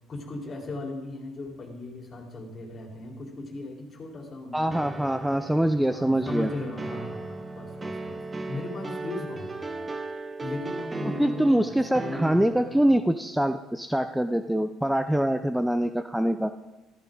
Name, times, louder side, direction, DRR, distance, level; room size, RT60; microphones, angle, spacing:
voice 1, 0.1-4.9 5.8-8.2 8.5-9.9 10.4-12.5 12.9-13.0, left 2 dB, 40° left, 0 dB, 4.3 m, -37 dB
voice 2, 4.5-6.5 11.0-16.5, right 1 dB, 5° right, 9 dB, 0.7 m, -24 dB
sound 1, 4.7-13.0, right 3 dB, 25° right, 1.2 m, -37 dB
14.5 x 14.5 x 4.0 m, 1.1 s
hypercardioid pair, 55°, 0 cm